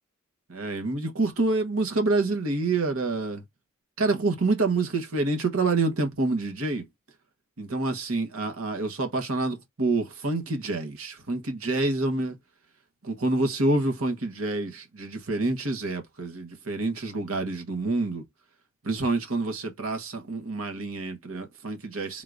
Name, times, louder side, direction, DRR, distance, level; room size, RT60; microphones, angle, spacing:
voice 1, 0.5-3.4 4.0-6.8 7.6-12.3 13.0-18.2 18.8-22.2, right 2 dB, 75° right, 1.2 m, -27 dB
3.7 x 2.5 x 4.7 m
head